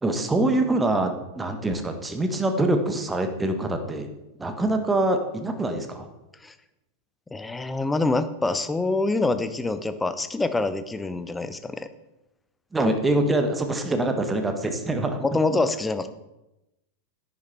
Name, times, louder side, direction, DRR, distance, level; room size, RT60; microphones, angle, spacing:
voice 1, 0.0-4.1 4.4-6.1 12.7-15.2, right 2 dB, 10° right, 6 dB, 1.4 m, -24 dB
voice 2, 7.3-11.9 15.2-16.1, left 2 dB, 10° left, 12 dB, 0.7 m, -25 dB
10.0 x 9.9 x 4.4 m, 0.96 s
figure-of-eight pair, 90°, 0 cm